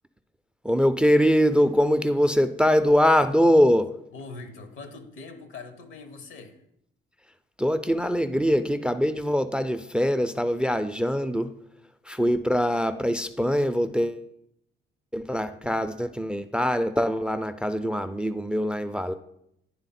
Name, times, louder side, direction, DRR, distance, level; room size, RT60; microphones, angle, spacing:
voice 1, 0.6-3.9 7.6-11.5 12.0-14.3 15.1-19.1, equal, 5° right, 12 dB, 0.3 m, -23 dB
voice 2, 4.1-6.6, left 3 dB, 80° left, 9 dB, 1.0 m, -42 dB
9.7 x 3.5 x 4.2 m, 0.75 s
cardioid pair, 90°, 20 cm